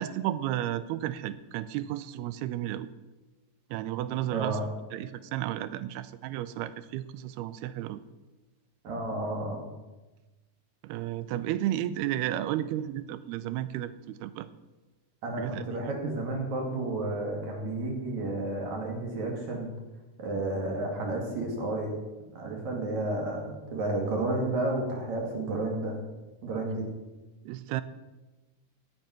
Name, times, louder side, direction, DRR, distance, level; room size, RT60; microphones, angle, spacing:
voice 1, 0.0-2.9 3.7-8.0 10.8-14.5 15.4-15.9 27.5-27.8, right 13 dB, 90° right, 14 dB, 2.6 m, -33 dB
voice 2, 4.3-4.6 8.8-9.6 15.2-19.7 20.2-21.9 22.3-26.0 26.4-26.9, right 2 dB, 50° right, 1 dB, 3.5 m, -31 dB
15.5 x 8.3 x 6.0 m, 1.1 s
omnidirectional pair, 4.6 m